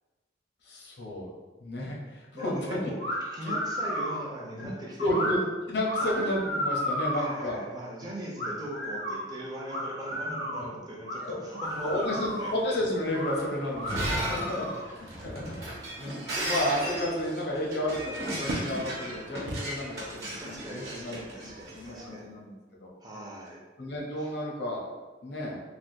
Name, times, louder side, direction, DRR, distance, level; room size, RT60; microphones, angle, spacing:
voice 1, 0.6-1.3 1.6-2.9 3.4-3.6 4.6-4.7 5.0-5.4 5.7-7.6 11.2-11.4 11.8-14.6 15.0-22.9 23.8-24.9 25.2-25.6, left 1 dB, 65° left, -3 dB, 0.7 m, -32 dB
voice 2, 2.3-5.3 6.0-6.2 7.1-12.5 14.3-14.6 20.4-22.3 23.0-23.6 24.2-24.3, right 1 dB, 20° right, -4 dB, 0.5 m, -40 dB
sound 1, 3.0-3.2 3.4-4.2 5.1-5.3 5.8-7.4 8.4-9.2 9.7-10.6 11.0-11.2 11.5-12.6 13.1-13.4 13.7-14.9, equal, 90° left, 1.2 m, -32 dB
sound 2, 11.6-22.1, right 1 dB, 80° right, 0.5 m, -44 dB
Shatter, 13.7-21.8, right 1 dB, 60° right, 0.9 m, -35 dB
3.3 x 2.2 x 2.6 m, 1.3 s
head